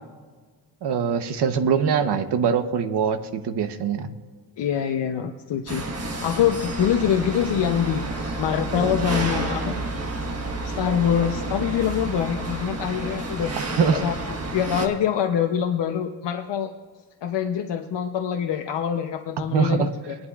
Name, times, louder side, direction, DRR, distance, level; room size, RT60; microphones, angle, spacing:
voice 1, 0.8-3.2 3.4-4.1 13.8-14.0 19.5-19.9, right 6 dB, 70° right, 9 dB, 1.0 m, -22 dB
voice 2, 4.6-5.9 6.2-9.7 10.8-13.5 13.9-14.2 14.5-16.7 17.2-20.2, left 9 dB, 80° left, 4 dB, 0.8 m, -24 dB
sound 1, 5.7-14.9, right 2 dB, 35° right, 1.4 m, -30 dB
20.0 x 11.5 x 2.4 m, 1.4 s
wide cardioid pair, 160°, 42 cm